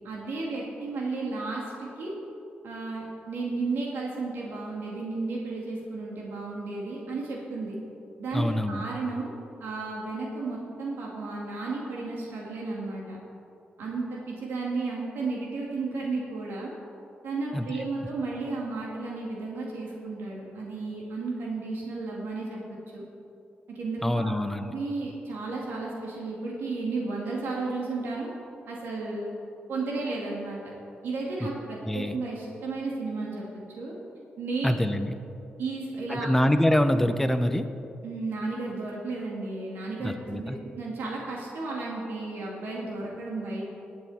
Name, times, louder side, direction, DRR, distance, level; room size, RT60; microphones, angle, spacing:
voice 1, 0.0-2.1 2.6-7.8 8.2-9.4 9.6-13.2 13.8-16.7 17.2-23.0 23.7-28.3 28.7-29.4 29.7-30.6 31.0-33.4 33.8-33.9 34.4-34.7 35.6-36.3 38.0-43.6, right 3 dB, 85° right, -3 dB, 2.4 m, -33 dB
voice 2, 8.3-8.8 17.5-17.7 24.0-24.7 31.4-31.5 31.8-32.2 34.6-35.1 36.1-37.7 40.0-40.6, left 1 dB, 5° left, 9 dB, 0.6 m, -25 dB
19.0 x 9.3 x 4.3 m, 2.7 s
wide cardioid pair, 130°, 4 cm